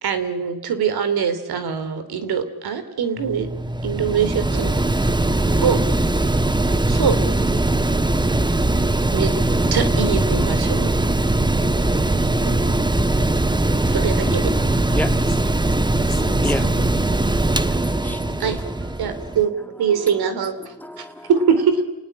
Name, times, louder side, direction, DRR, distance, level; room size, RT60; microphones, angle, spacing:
voice 1, 0.0-3.5 3.8-4.8 5.6-5.8 6.3-6.4 6.9-7.2 9.1-9.3 9.7-10.9 12.4-12.6 13.8-14.4 18.4-18.6 19.0-19.5 19.8-20.5 21.0-21.8, right 7 dB, 85° right, 3.1 m, -23 dB
Mechanical fan, 3.2-19.5, right 2 dB, 10° right, 1.1 m, -20 dB
voice 2, 14.3-15.2 15.7-17.0 18.1-18.4, left 7 dB, 50° left, 1.9 m, -38 dB
voice 3, 14.9-15.4 16.4-16.7 17.7-21.3, left 1 dB, 5° left, 1.7 m, -33 dB
29.5 x 19.0 x 8.8 m
cardioid pair, 70°, 37 cm